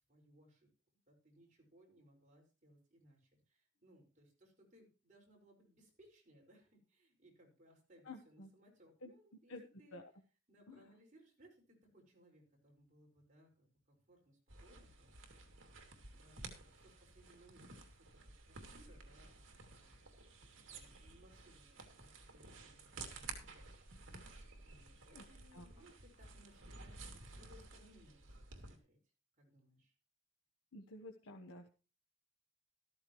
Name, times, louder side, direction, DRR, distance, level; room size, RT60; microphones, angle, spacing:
voice 1, 0.1-0.7 1.1-10.0 10.5-15.1 15.6-18.1 18.5-24.0 24.6-29.0 29.4-29.9, equal, 35° right, -1 dB, 5.5 m, -66 dB
voice 2, 8.0-8.5 9.0-9.1 9.5-9.6 9.9-10.1 10.7-10.9 25.1-25.2 25.5-25.6 30.7-31.7, left 2 dB, 85° left, 2 dB, 1.2 m, -51 dB
sound 1, 14.5-28.8, right 3 dB, 65° right, 2.6 m, -53 dB
13.5 x 13.5 x 3.1 m, 0.34 s
head